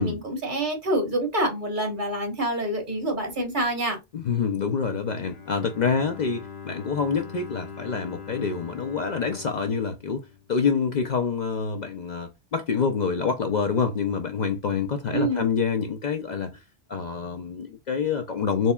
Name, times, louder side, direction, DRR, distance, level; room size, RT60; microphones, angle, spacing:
voice 1, 0.0-4.0 15.1-15.4, right 1 dB, 50° right, 1.4 m, -27 dB
voice 2, 4.1-16.6 16.9-18.7, left 5 dB, 55° left, 0.6 m, -26 dB
Bowed string instrument, 5.2-11.1, left 6 dB, 80° left, 1.1 m, -42 dB
4.2 x 3.3 x 2.2 m
omnidirectional pair, 1.0 m